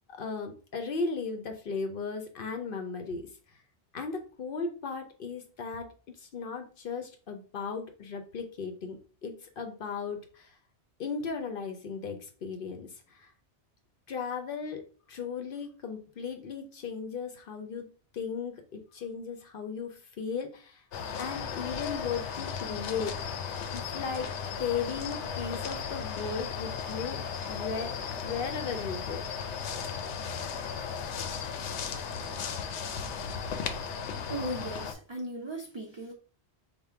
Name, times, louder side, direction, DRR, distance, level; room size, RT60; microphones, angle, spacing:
voice 1, 0.1-3.3 3.9-10.6 11.0-13.3 14.1-20.8 21.2-23.2 23.7-29.3, left 5 dB, 60° left, 0.7 m, -36 dB
sound 1, 20.9-34.9, left 6 dB, 85° left, 0.9 m, -36 dB
voice 2, 34.3-36.1, right 1 dB, 35° right, 0.5 m, -37 dB
3.6 x 2.1 x 4.3 m
omnidirectional pair, 1.2 m